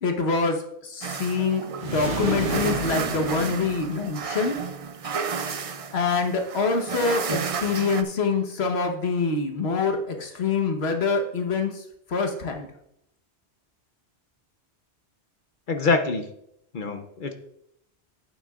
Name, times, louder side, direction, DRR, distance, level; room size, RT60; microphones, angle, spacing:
voice 1, 0.0-4.5 5.9-11.7 12.1-12.7, left 4 dB, 70° left, 4 dB, 1.4 m, -25 dB
sound 1, 1.0-8.0, right 5 dB, 45° right, 0.5 m, -32 dB
sound 2, 1.8-4.4, right 3 dB, 90° right, 1.4 m, -31 dB
voice 2, 15.7-16.3 16.7-17.3, left 4 dB, 50° left, 7 dB, 0.8 m, -25 dB
11.0 x 9.2 x 2.4 m, 0.77 s
omnidirectional pair, 1.1 m